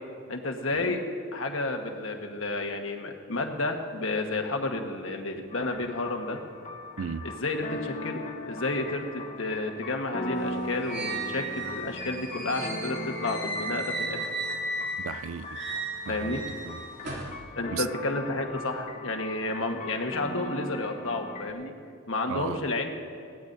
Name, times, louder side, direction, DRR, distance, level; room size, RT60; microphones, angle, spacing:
voice 1, 0.3-1.0 1.3-6.4 7.2-14.3 16.1-16.4 17.5-21.7 22.1-22.9, left 2 dB, 75° left, 1.3 m, -31 dB
sound 1, 5.5-21.5, left 2 dB, 35° left, 0.8 m, -39 dB
voice 2, 7.0-7.3 15.0-15.6 16.0-16.8 17.7-17.9 22.3-22.6, right 7 dB, 75° right, 0.4 m, -36 dB
sound 2, 10.4-15.1 15.4-17.4, right 2 dB, 50° right, 2.9 m, -35 dB
21.0 x 16.5 x 2.6 m
head